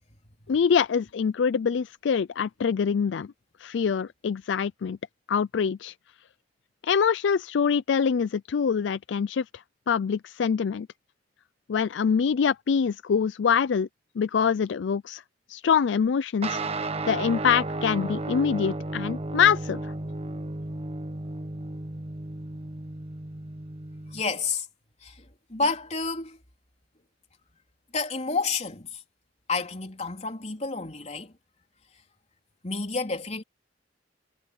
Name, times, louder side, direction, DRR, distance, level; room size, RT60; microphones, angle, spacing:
voice 1, 0.5-3.3 3.6-5.0 5.3-5.9 6.8-9.4 9.9-10.9 11.7-13.9 14.2-15.2 15.5-16.6 17.1-19.9, left 6 dB, 70° left, 0.4 m, -24 dB
sound 1, 16.4-24.2, right 2 dB, 35° right, 1.3 m, -34 dB
voice 2, 24.1-24.7 25.0-25.1 25.5-26.4 27.9-28.9 29.5-31.3 32.6-33.4, left 4 dB, 40° left, 3.8 m, -29 dB
head